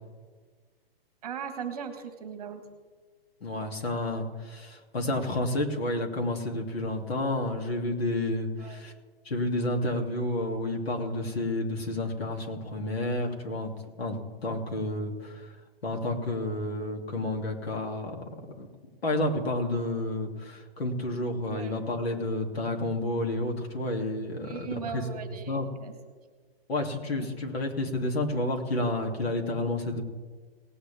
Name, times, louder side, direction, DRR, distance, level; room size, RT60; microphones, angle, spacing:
voice 1, 1.2-2.6 8.6-8.8 21.5-21.8 24.4-25.9, right 7 dB, 40° right, 7 dB, 1.4 m, -38 dB
voice 2, 3.4-8.9 9.2-13.7 14.0-14.2 14.4-15.5 15.8-18.1 18.6-18.7 19.0-25.0 25.5-25.7 26.7-30.0, left 1 dB, 75° left, 0 dB, 2.8 m, -30 dB
18.5 x 9.1 x 3.5 m, 1.4 s
hypercardioid pair, 180°, 31 cm